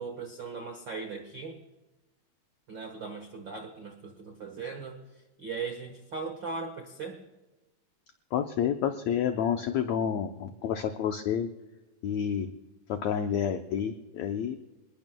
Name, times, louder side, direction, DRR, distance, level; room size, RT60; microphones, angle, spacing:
voice 1, 0.0-1.6 2.7-5.0 5.4-7.2, right 4 dB, 70° right, 5 dB, 1.0 m, -38 dB
voice 2, 8.3-11.5 12.0-12.5 12.9-14.6, left 8 dB, 90° left, 6 dB, 1.5 m, -29 dB
27.5 x 20.0 x 2.2 m, 1.1 s
omnidirectional pair, 4.2 m